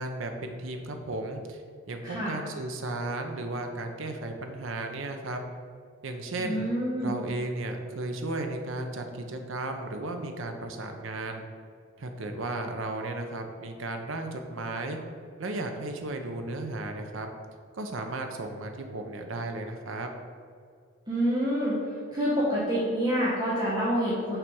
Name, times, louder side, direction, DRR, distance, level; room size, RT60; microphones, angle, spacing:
voice 1, 0.0-1.6 1.9-5.4 6.0-6.7 7.0-11.4 12.0-15.0 15.4-17.3 17.7-20.1, right 2 dB, 70° right, 5 dB, 0.7 m, -34 dB
voice 2, 6.4-7.2 21.1-21.8 22.1-24.4, equal, 20° right, -9 dB, 1.0 m, -27 dB
5.7 x 3.4 x 5.3 m, 2.2 s
head